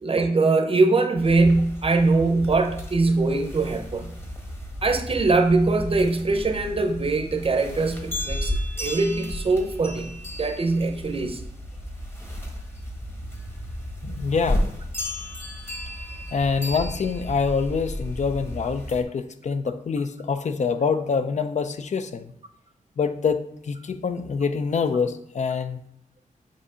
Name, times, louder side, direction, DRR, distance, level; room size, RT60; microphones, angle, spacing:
voice 1, 0.0-4.1 4.8-10.1 10.3-11.4 16.5-16.6, right 3 dB, 40° right, 6 dB, 0.7 m, -22 dB
sound 1, 1.2-19.0, left 1 dB, 15° left, 1.1 m, -33 dB
voice 2, 14.0-14.6 16.3-22.3 23.0-25.8, left 5 dB, 55° left, 9 dB, 0.5 m, -25 dB
7.5 x 2.8 x 5.5 m, 0.73 s
wide cardioid pair, 105°, 14 cm